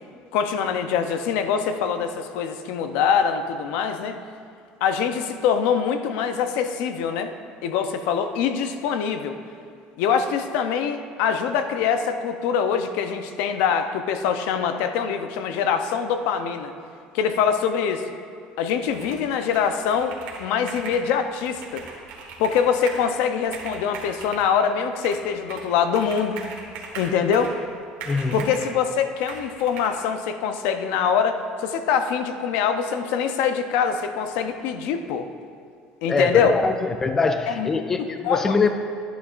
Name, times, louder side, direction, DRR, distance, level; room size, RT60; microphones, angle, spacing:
voice 1, 0.3-4.2 4.8-7.3 7.6-9.4 10.0-16.7 17.1-18.0 18.6-21.8 22.4-26.4 27.0-27.5 28.3-35.3 36.0-36.5 37.5-37.7 38.0-38.4, left 7 dB, 75° left, 8 dB, 0.6 m, -24 dB
Computer keyboard, 18.9-19.3 19.5-21.0 21.4-23.1 23.4-24.5 25.0-25.7 25.9-27.6 28.0-28.7 29.3-29.9, right 5 dB, 75° right, 1.6 m, -39 dB
voice 2, 28.1-28.5 36.1-38.7, left 4 dB, 15° left, 7 dB, 0.3 m, -23 dB
12.0 x 10.0 x 2.5 m, 2.3 s
cardioid pair, 165°, 3 cm